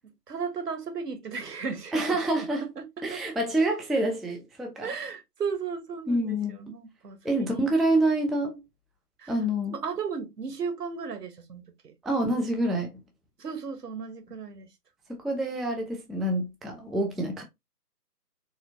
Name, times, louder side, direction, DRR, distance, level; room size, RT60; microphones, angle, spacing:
voice 1, 0.3-3.2 4.8-7.7 9.2-9.4 9.7-11.9 13.4-14.7, right 5 dB, 70° right, 1.1 m, -35 dB
voice 2, 1.9-2.7 3.0-4.9 6.1-6.5 7.2-8.6 9.3-9.7 12.0-12.9 15.1-17.4, right 1 dB, ahead, 0.3 m, -27 dB
4.1 x 2.5 x 2.6 m
figure-of-eight pair, 155°, 48 cm